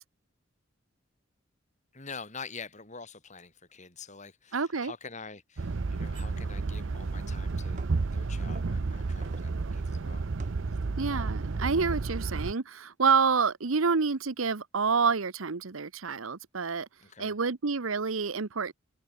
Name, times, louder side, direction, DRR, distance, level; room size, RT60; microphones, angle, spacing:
voice 1, 1.9-7.8 8.1-10.3 10.7-10.8 11.1-11.4 17.0-17.4, left 4 dB, 35° left, 4.4 m, -46 dB
voice 2, 4.5-4.9 11.0-16.9 17.2-18.7, right 5 dB, 85° right, 0.9 m, -28 dB
sound 1, 5.6-12.5, right 3 dB, 65° right, 0.6 m, -32 dB
sound 2, 7.8-8.1 8.6-9.6 10.4-10.7 11.2-12.2, right 2 dB, 40° right, 4.7 m, -49 dB
head